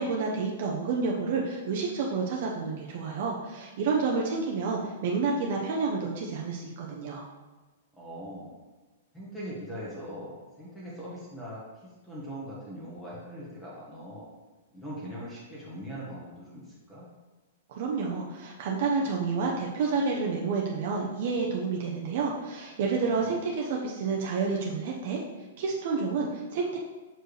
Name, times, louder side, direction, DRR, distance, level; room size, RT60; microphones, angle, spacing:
voice 1, 0.0-7.2 17.7-25.2 25.6-26.8, right 4 dB, 45° right, -2 dB, 0.7 m, -29 dB
voice 2, 7.9-8.5 9.1-14.3 14.7-17.1 23.2-23.4, equal, 5° left, -7 dB, 1.3 m, -41 dB
6.3 x 4.6 x 3.3 m, 1.2 s
hypercardioid pair, 170°, 0 cm